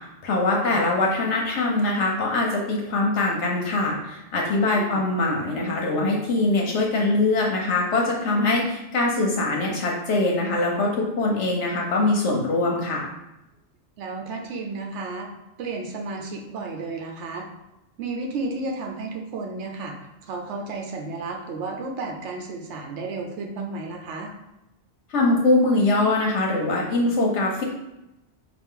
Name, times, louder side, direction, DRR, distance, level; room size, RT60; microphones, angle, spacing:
voice 1, 0.2-13.1 25.1-27.6, left 2 dB, 80° left, -1 dB, 1.0 m, -22 dB
voice 2, 14.0-15.3 15.6-17.5 18.0-19.9 20.2-24.3, right 3 dB, 85° right, 2 dB, 0.9 m, -32 dB
4.2 x 2.4 x 3.6 m, 0.92 s
omnidirectional pair, 1.2 m